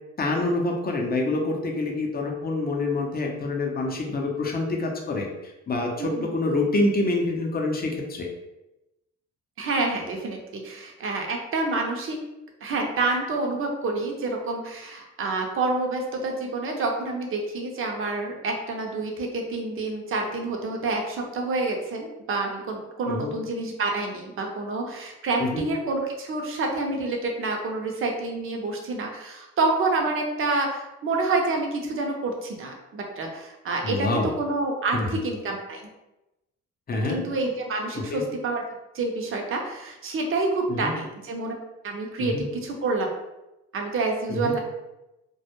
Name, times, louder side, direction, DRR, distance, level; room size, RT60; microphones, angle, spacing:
voice 1, 0.2-5.3 5.7-8.3 23.1-23.3 25.4-25.6 33.8-34.3 34.9-35.1 36.9-37.2 37.9-38.2 40.7-40.9 42.2-42.5 44.3-44.5, left 2 dB, 30° left, 1 dB, 0.5 m, -26 dB
voice 2, 6.0-6.3 9.6-12.2 12.6-34.1 34.4-35.8 37.1-38.6 38.9-41.5 41.8-43.1 43.7-44.6, right 3 dB, 45° right, 1 dB, 0.6 m, -28 dB
2.2 x 2.0 x 2.9 m, 0.95 s
cardioid pair, 90°, 30 cm